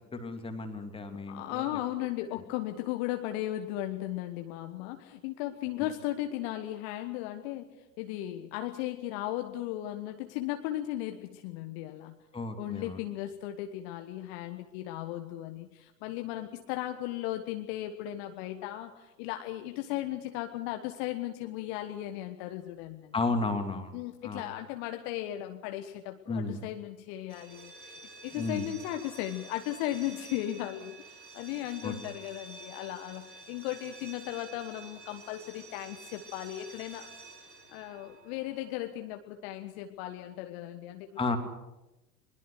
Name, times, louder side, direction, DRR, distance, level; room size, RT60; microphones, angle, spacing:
voice 1, 0.1-1.8 12.3-13.0 23.1-24.4 26.3-26.6 28.3-28.7 31.8-31.9 41.2-41.4, left 3 dB, 10° left, 5 dB, 2.6 m, -33 dB
voice 2, 1.3-7.7 8.0-12.2 12.6-23.1 23.9-28.0 28.2-37.1 37.7-41.4, left 14 dB, 40° left, 6 dB, 1.4 m, -36 dB
sound 1, 27.2-38.9, right 3 dB, 75° right, 4.3 m, -50 dB
22.0 x 21.5 x 6.4 m, 0.98 s
figure-of-eight pair, 95°, 49 cm